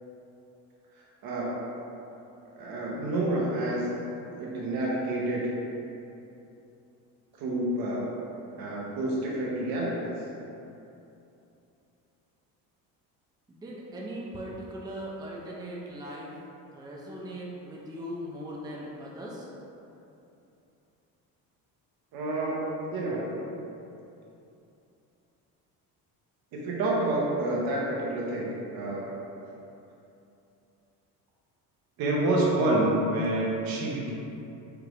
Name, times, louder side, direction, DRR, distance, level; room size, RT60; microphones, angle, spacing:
voice 1, 1.2-1.7 2.6-3.9 4.3-5.5 7.4-8.1 8.5-10.1 22.1-23.3 26.5-29.1 32.0-34.1, right 1 dB, 70° right, -4 dB, 1.0 m, -28 dB
voice 2, 13.5-16.3 16.7-19.5, equal, 10° right, -4 dB, 0.5 m, -39 dB
4.7 x 2.5 x 3.3 m, 2.8 s
cardioid pair, 105°, 37 cm